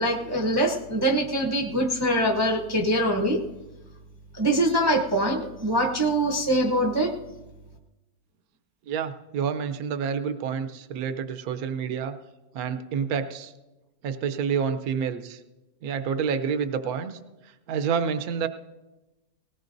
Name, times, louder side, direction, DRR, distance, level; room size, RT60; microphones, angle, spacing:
voice 1, 0.0-3.4 4.3-7.1, right 1 dB, 20° right, 1 dB, 0.8 m, -23 dB
voice 2, 8.9-12.1 12.5-13.5 14.0-15.4 15.8-17.2 17.7-18.5, right 6 dB, 65° right, 9 dB, 1.2 m, -28 dB
19.5 x 17.5 x 2.6 m, 1.1 s
omnidirectional pair, 1.7 m